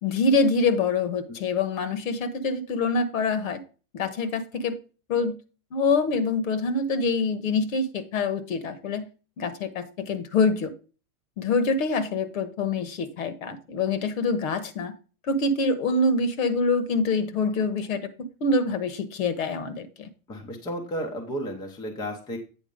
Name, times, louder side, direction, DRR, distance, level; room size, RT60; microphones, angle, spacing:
voice 1, 0.0-3.6 3.9-4.8 5.1-5.4 5.7-9.1 9.4-10.7 11.4-14.9 15.3-18.0 18.4-20.1, left 3 dB, 65° left, 12 dB, 1.4 m, -25 dB
voice 2, 20.3-22.4, equal, 10° left, 3 dB, 0.7 m, -33 dB
8.6 x 4.3 x 5.3 m, 0.34 s
supercardioid pair, 160°, 45 cm